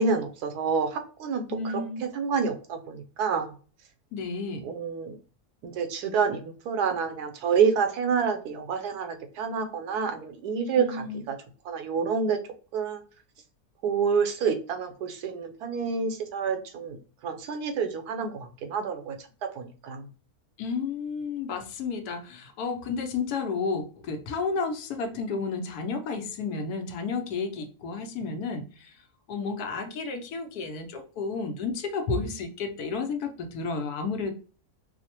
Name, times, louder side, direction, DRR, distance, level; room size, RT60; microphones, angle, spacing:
voice 1, 0.0-1.7 2.1-3.5 4.6-5.2 5.6-11.3 11.6-12.4 12.7-13.0 13.8-17.0 17.2-19.2 19.6-20.1, right 6 dB, 80° right, 6 dB, 1.2 m, -28 dB
voice 2, 1.5-2.0 4.1-4.6 10.8-11.2 20.6-28.9 29.3-34.3, left 4 dB, 80° left, 6 dB, 1.2 m, -32 dB
4.8 x 2.1 x 2.9 m, 0.38 s
omnidirectional pair, 1.6 m